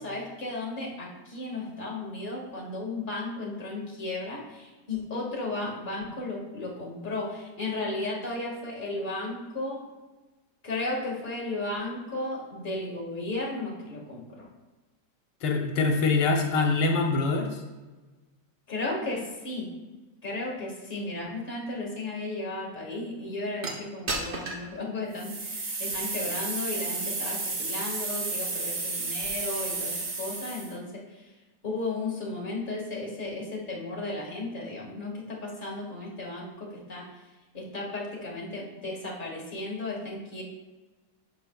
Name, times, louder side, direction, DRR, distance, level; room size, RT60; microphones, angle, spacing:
voice 1, 0.0-9.9 10.6-14.5 18.7-19.7 20.2-31.3 31.6-37.1 37.5-40.4, left 2 dB, 30° left, -3 dB, 1.8 m, -34 dB
voice 2, 15.4-17.6, left 3 dB, 85° left, 3 dB, 1.5 m, -24 dB
sound 1, 23.6-23.7 24.1-24.7 25.1-30.7, right 3 dB, 40° right, 1.3 m, -32 dB
11.5 x 6.8 x 2.3 m, 1.2 s
omnidirectional pair, 1.9 m